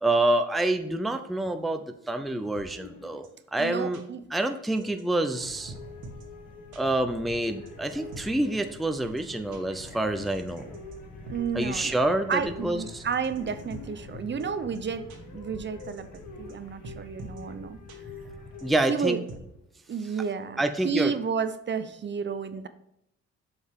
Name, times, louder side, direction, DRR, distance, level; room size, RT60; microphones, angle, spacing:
voice 1, 0.0-4.0 4.3-5.7 6.8-10.7 11.5-13.0 18.6-19.2 20.6-21.1, right 2 dB, ahead, 7 dB, 0.5 m, -27 dB
sound 1, 2.5-2.7 3.2-3.3 3.6-3.7 3.9-4.0 4.6-5.0 5.3-5.4 5.7-6.2 6.7-6.8 7.4-8.2 8.8-8.9 9.2-9.3 9.5-9.6 10.2-11.0 11.3-11.8 12.3-12.4 13.0-13.8 14.4-14.5 14.7-14.8 15.1-15.2 15.8-16.2 16.5-16.6 16.8-17.4 17.9-18.0 18.6-19.4, right 2 dB, 75° right, 1.9 m, -45 dB
sound 2, 2.6-3.6 4.7-19.5, left 4 dB, 80° left, 1.2 m, -48 dB
voice 2, 3.6-4.2 11.3-12.0 12.3-16.1 16.4-17.8 18.9-19.2 19.9-22.7, right 6 dB, 40° right, 11 dB, 0.7 m, -31 dB
sound 3, 5.4-18.8, left 2 dB, 30° left, 2.3 m, -47 dB
8.1 x 5.4 x 3.7 m, 0.79 s
cardioid pair, 90°, 30 cm